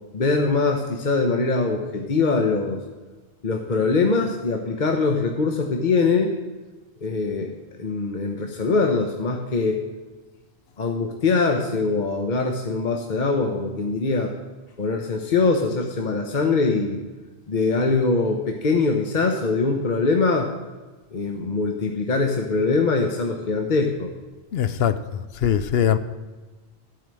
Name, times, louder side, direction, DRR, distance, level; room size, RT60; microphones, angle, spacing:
voice 1, 0.1-2.8 3.4-6.3 7.0-7.5 7.8-9.8 10.8-14.3 14.8-17.0 17.5-20.5 21.1-24.1, left 4 dB, 50° left, 1.0 m, -22 dB
voice 2, 24.5-25.0 25.4-26.0, left 9 dB, 75° left, 0.9 m, -20 dB
14.0 x 4.9 x 7.5 m
omnidirectional pair, 1.1 m